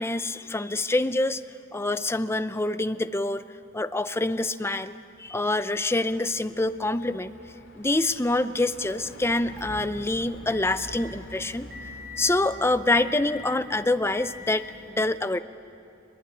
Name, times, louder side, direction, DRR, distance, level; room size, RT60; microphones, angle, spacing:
voice 1, 0.0-1.4 1.7-3.4 3.7-4.9 5.2-7.3 7.8-11.7 12.2-14.7 15.0-15.4, left 2 dB, 10° left, 12 dB, 0.6 m, -26 dB
Truck, 4.9-14.2, left 1 dB, 65° left, 2.6 m, -50 dB
Motor vehicle (road) / Engine, 8.8-14.9, left 2 dB, 60° right, 4.6 m, -44 dB
22.0 x 20.5 x 9.9 m, 2.6 s
head